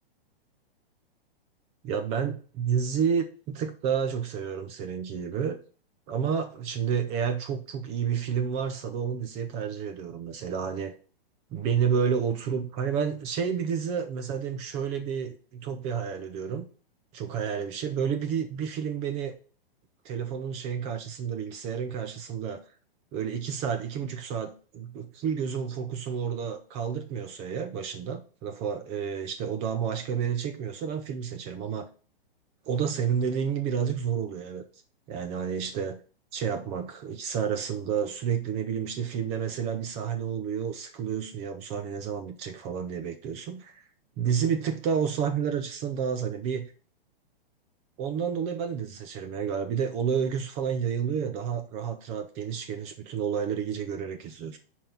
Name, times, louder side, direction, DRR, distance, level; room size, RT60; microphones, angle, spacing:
voice 1, 1.8-5.6 6.1-10.9 11.5-16.7 17.1-19.3 20.0-22.6 23.1-31.9 32.7-34.6 35.1-36.0 36.3-43.8 44.2-46.7 48.0-54.6, right 7 dB, 20° right, 8 dB, 0.5 m, -30 dB
5.7 x 4.5 x 5.3 m, 0.39 s
hypercardioid pair, 145°, 29 cm